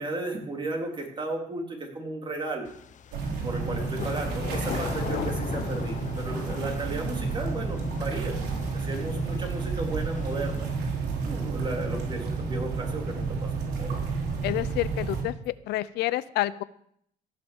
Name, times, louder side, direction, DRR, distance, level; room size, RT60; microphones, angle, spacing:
voice 1, 0.0-2.7 3.4-8.3 8.7-10.7 11.3-14.0, right 2 dB, 30° right, 1 dB, 3.6 m, -34 dB
sound 1, 2.6-10.6, left 8 dB, 45° left, 0.9 m, -39 dB
sound 2, 3.1-15.2, right 4 dB, 80° right, 3.4 m, -31 dB
voice 2, 14.4-16.6, left 16 dB, 80° left, 17 dB, 0.5 m, -29 dB
16.5 x 6.4 x 7.2 m, 0.69 s
cardioid pair, 110°, 17 cm